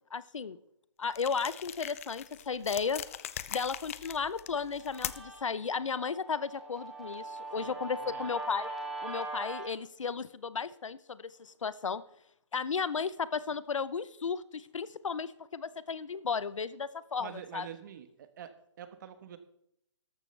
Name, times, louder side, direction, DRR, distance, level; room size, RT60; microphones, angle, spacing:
voice 1, 0.1-0.6 1.0-3.0 3.5-8.7 9.0-12.0 12.5-17.7, left 5 dB, 85° left, 17 dB, 0.8 m, -34 dB
sound 1, 1.1-5.4, left 11 dB, 30° left, 0.4 m, -41 dB
Guitar, 4.2-9.7, right 2 dB, ahead, 1.6 m, -42 dB
voice 2, 7.6-8.3 17.2-19.4, right 9 dB, 40° right, 11 dB, 1.2 m, -47 dB
13.5 x 12.0 x 3.3 m, 0.76 s
hypercardioid pair, 160°, 16 cm